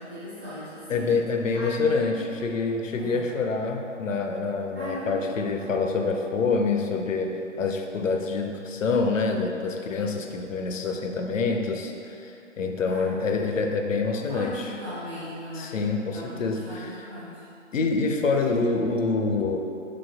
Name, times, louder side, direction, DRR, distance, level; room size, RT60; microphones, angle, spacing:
voice 1, 0.0-1.1 1.5-2.3 3.0-3.3 4.7-5.3 12.8-13.3 14.1-15.7 16.1-17.5 18.4-18.5, equal, 10° right, -13 dB, 0.4 m, -38 dB
voice 2, 0.9-7.3 7.6-14.7 15.6-16.9 17.7-19.6, left 4 dB, 80° left, 4 dB, 0.5 m, -26 dB
5.1 x 3.4 x 2.3 m, 2.7 s
figure-of-eight pair, 135°, 38 cm